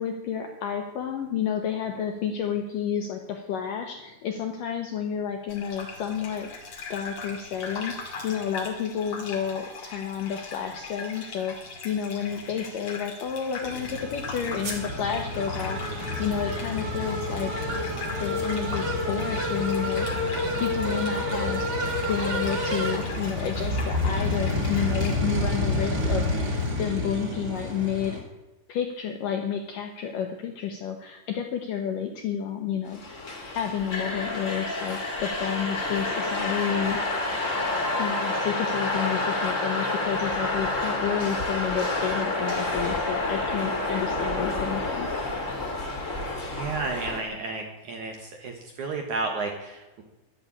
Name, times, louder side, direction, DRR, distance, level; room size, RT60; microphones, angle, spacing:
voice 1, 0.0-6.5 6.9-17.6 18.2-20.3 20.6-21.7 22.1-28.2 28.7-33.2 33.5-37.0 38.0-45.1, left 8 dB, 70° left, 4 dB, 2.1 m, -30 dB
Gurgling / Bathtub (filling or washing), 5.5-25.2, left 4 dB, 45° left, 2.0 m, -40 dB
sound 1, 13.6-28.2, left 1 dB, 25° right, 2.5 m, -28 dB
sound 2, 32.9-47.2, left 2 dB, 25° left, 1.7 m, -29 dB
voice 2, 46.5-50.0, right 3 dB, 60° right, 3 dB, 2.1 m, -32 dB
11.5 x 11.0 x 8.7 m, 1.0 s
omnidirectional pair, 5.2 m